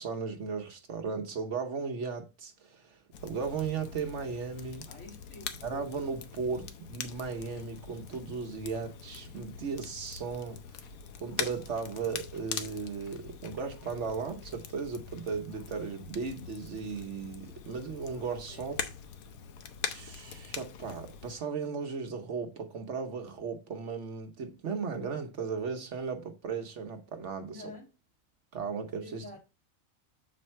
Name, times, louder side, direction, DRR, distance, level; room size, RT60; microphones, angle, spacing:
voice 1, 0.0-4.9 5.6-10.8 11.2-18.8 19.9-27.6 28.5-29.2, right 5 dB, 60° right, 1.1 m, -36 dB
Crackle, 3.1-21.3, left 7 dB, 85° left, 1.2 m, -43 dB
voice 2, 4.8-5.7 18.5-18.7 27.5-27.9 29.0-29.4, left 2 dB, 55° left, 2.7 m, -48 dB
7.0 x 4.3 x 4.3 m
omnidirectional pair, 1.5 m